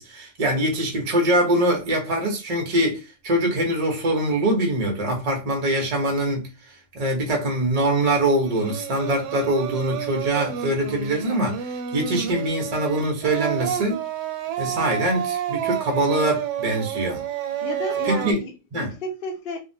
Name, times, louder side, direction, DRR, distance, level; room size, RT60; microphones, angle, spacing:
voice 1, 0.0-6.5 6.9-14.0 14.6-17.2 18.0-18.4 18.7-18.9, right 1 dB, 70° right, 0.3 m, -23 dB
Singing, 8.4-18.3, right 9 dB, 90° right, 1.2 m, -30 dB
voice 2, 17.6-19.6, left 2 dB, 75° left, 0.5 m, -33 dB
3.5 x 2.1 x 2.6 m
omnidirectional pair, 1.8 m